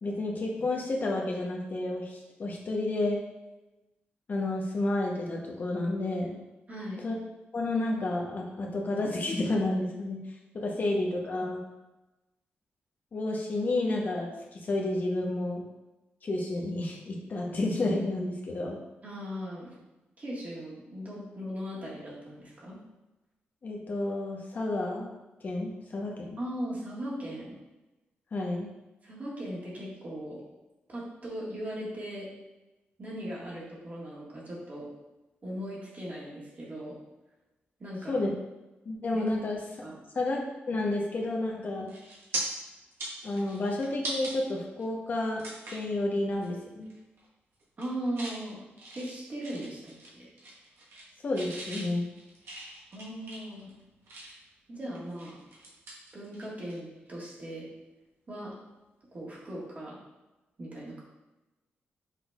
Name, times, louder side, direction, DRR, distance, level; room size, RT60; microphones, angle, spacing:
voice 1, 0.0-3.2 4.3-6.4 7.0-7.2 7.5-10.2 10.6-11.6 13.1-15.6 16.2-18.8 23.6-25.1 25.4-26.3 28.3-28.7 38.1-38.3 38.9-39.6 40.2-40.4 40.7-41.9 43.2-45.4 45.7-46.9 51.2-52.1, left 2 dB, 50° left, -1 dB, 0.8 m, -30 dB
voice 2, 6.7-7.0 19.0-19.7 20.2-22.8 26.4-27.6 29.0-30.4 30.9-32.3 33.0-34.9 35.4-36.9 37.8-38.2 39.1-39.2 39.8-40.0 47.8-48.6 48.9-50.3 52.9-53.7 54.7-55.4 56.1-57.6 58.3-58.5 59.1-60.0 60.6-61.0, equal, 40° right, -5 dB, 1.6 m, -38 dB
sound 1, 41.3-41.5 41.9-42.4 42.8-44.3 44.8-44.9 45.4-45.9 46.3-46.5 46.8-47.3 47.6-48.4 48.8-50.1 50.4-51.1 51.3-54.5 54.9-56.8 57.1-57.3 59.1-59.3, right 2 dB, 80° right, 1.2 m, -40 dB
5.8 x 3.9 x 2.3 m, 1.1 s
cardioid pair, 95°, 4 cm